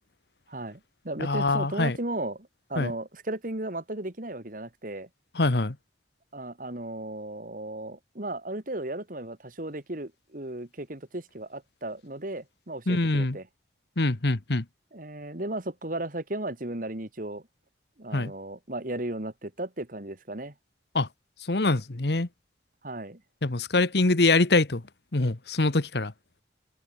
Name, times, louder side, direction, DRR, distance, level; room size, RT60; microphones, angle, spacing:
voice 1, 0.5-5.1 6.3-13.5 14.9-17.4 18.0-20.5 22.8-23.2, right 1 dB, 50° right, 2.3 m, -35 dB
voice 2, 1.2-2.0 2.8-2.9 5.3-5.7 12.9-13.4 14.0-14.6 18.1-18.3 20.9-21.1 21.5-22.3 23.4-24.8 25.1-26.1, left 2 dB, 65° left, 1.3 m, -24 dB
open air
head